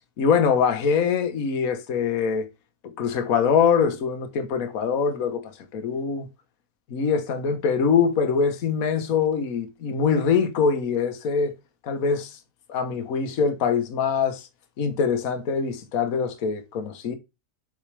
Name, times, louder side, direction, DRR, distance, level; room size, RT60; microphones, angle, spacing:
voice 1, 0.2-2.5 2.8-6.3 6.9-11.5 11.8-12.4 12.7-14.5 14.8-17.2, left 6 dB, 60° left, 1.5 m, -23 dB
7.2 x 6.2 x 3.3 m
omnidirectional pair, 1.7 m